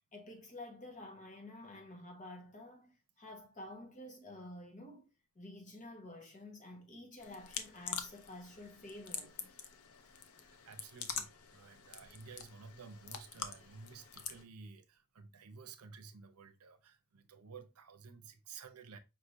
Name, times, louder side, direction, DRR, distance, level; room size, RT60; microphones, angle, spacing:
voice 1, 0.1-9.5, left 1 dB, 35° left, 1.3 m, -50 dB
sound 1, 7.2-14.4, left 7 dB, 75° left, 0.7 m, -46 dB
voice 2, 10.4-19.0, right 5 dB, 85° right, 0.7 m, -53 dB
5.2 x 3.2 x 2.6 m
head